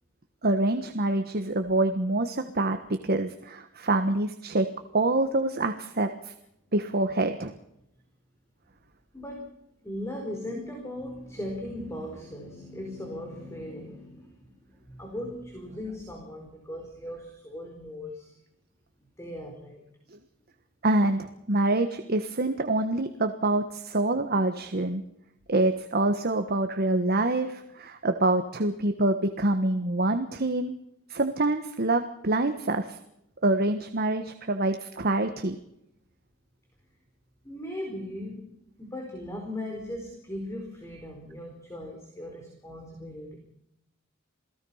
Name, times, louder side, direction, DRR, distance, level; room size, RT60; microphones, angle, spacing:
voice 1, 0.4-4.7 4.9-6.3 6.7-7.5 20.8-25.0 25.5-30.7 31.1-33.0 33.4-35.6, right 2 dB, 50° right, 7 dB, 1.4 m, -26 dB
voice 2, 9.1-9.5 9.8-18.4 19.2-19.8 37.4-38.5 38.8-43.4, left 1 dB, 15° left, 2 dB, 4.6 m, -38 dB
28.5 x 18.5 x 5.7 m, 0.80 s
head